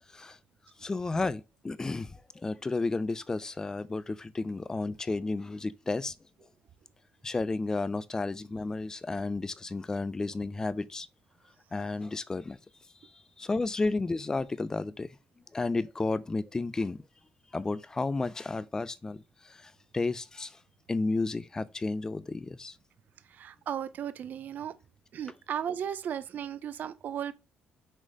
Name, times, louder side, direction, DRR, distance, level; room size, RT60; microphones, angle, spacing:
voice 1, 0.8-6.1 7.2-11.1 11.7-12.6 13.4-15.1 15.5-17.0 17.5-20.6 20.9-22.8, left 3 dB, 15° left, 0.5 m, -32 dB
voice 2, 23.3-24.7 25.1-27.3, right 9 dB, 50° right, 0.6 m, -35 dB
6.2 x 4.1 x 5.2 m
cardioid pair, 140°, 4 cm